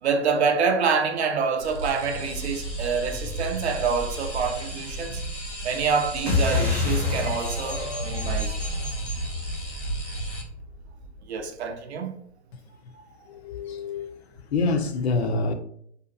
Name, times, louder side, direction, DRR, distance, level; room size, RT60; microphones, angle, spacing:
voice 1, 0.0-5.2 5.6-8.5 11.3-12.1, right 5 dB, 65° right, 0.6 m, -26 dB
sound 1, 1.6-10.4, right 1 dB, 90° left, 1.1 m, -34 dB
sound 2, 6.3-11.2, left 3 dB, 5° left, 0.6 m, -28 dB
voice 2, 13.3-14.1 14.5-15.5, left 3 dB, 65° left, 0.5 m, -26 dB
2.8 x 2.3 x 2.3 m
hypercardioid pair, 135°, 35 cm